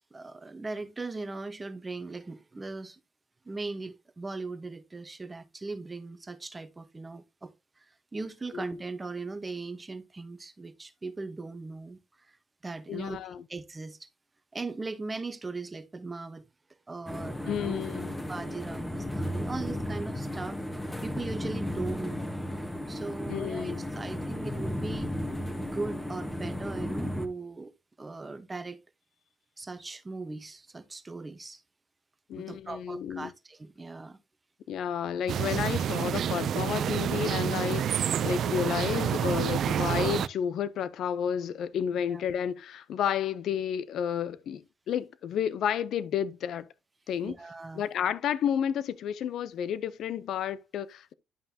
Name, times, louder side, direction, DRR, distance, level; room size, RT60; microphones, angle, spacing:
voice 1, 0.1-3.0 3.4-12.0 12.3-12.4 12.6-14.1 14.5-16.4 16.9-17.8 18.3-20.6 21.0-25.1 25.6-27.7 28.0-28.8 29.6-31.6 32.3-34.2 42.1-42.2 47.2-47.9, right 3 dB, 25° right, 1.0 m, -39 dB
voice 2, 12.9-13.4 17.5-18.1 23.3-23.9 32.3-33.3 34.7-46.7 47.1-47.3 47.7-51.1, left 9 dB, 75° left, 0.6 m, -31 dB
sound 1, 17.1-27.3, left 1 dB, 10° left, 1.3 m, -34 dB
sound 2, 35.3-40.3, right 9 dB, 65° right, 0.4 m, -28 dB
11.0 x 5.5 x 2.8 m
cardioid pair, 90°, 0 cm